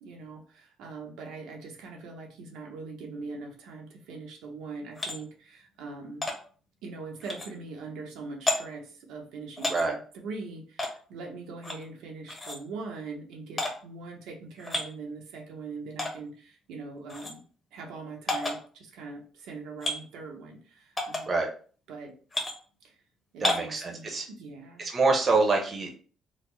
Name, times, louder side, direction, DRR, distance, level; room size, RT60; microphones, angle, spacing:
voice 1, 0.0-6.3 6.8-17.4 17.7-21.4 21.9-22.1 22.8-23.0 23.3-24.9, right 3 dB, 85° right, 1 dB, 0.9 m, -42 dB
sound 1, 5.0-5.2 6.2-6.4 7.2-7.5 8.5-8.6 9.6-9.8 10.8-10.9 11.6-11.8 12.3-12.6 13.6-13.7 14.6-14.9 16.0-16.1 17.1-17.3 18.3-18.6 19.8-20.0 21.0-21.2 22.3-22.5 23.4-23.7, left 2 dB, 20° left, 0.7 m, -30 dB
voice 2, 23.4-24.2 24.8-25.9, right 3 dB, 25° right, 1 dB, 0.7 m, -26 dB
4.0 x 2.0 x 3.2 m, 0.41 s
cardioid pair, 145°, 0 cm